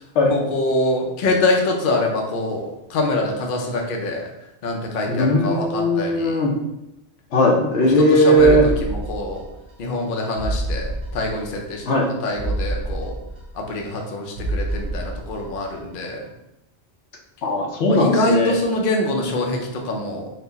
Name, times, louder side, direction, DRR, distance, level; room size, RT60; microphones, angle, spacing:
voice 1, 0.3-4.3 4.6-6.4 8.0-9.4 9.8-11.8 12.2-13.2 13.5-16.3 17.9-20.3, left 2 dB, 55° left, 1 dB, 0.7 m, -24 dB
voice 2, 5.1-6.5 7.3-8.6 11.9-12.1 17.4-18.5, equal, 80° left, 0 dB, 1.0 m, -17 dB
sound 1, 8.4-9.7 10.0-10.1 10.4-11.7 12.0-12.1 12.4-14.1 14.4-15.7 16.0-16.1, right 1 dB, 40° right, 0.5 m, -28 dB
4.2 x 2.1 x 3.9 m, 0.91 s
omnidirectional pair, 1.2 m